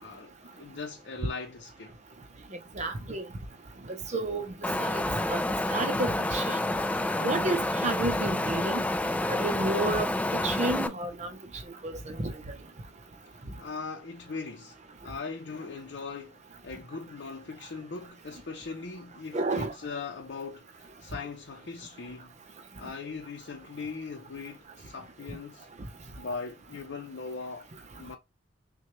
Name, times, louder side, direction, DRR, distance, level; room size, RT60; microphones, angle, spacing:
voice 1, 0.0-1.9 13.6-14.8 15.0-16.4 16.6-22.3 22.8-25.7 26.2-28.2, left 4 dB, 65° left, 0.6 m, -40 dB
voice 2, 2.8-3.2 3.9-5.0 5.3-5.4 5.7-6.6 7.2-8.8 9.3-10.1 10.4-11.3 11.8-12.3 19.3-19.7, right 2 dB, 40° right, 0.6 m, -30 dB
Wind, 4.6-10.9, left 1 dB, 5° left, 0.3 m, -29 dB
6.0 x 2.3 x 3.0 m
head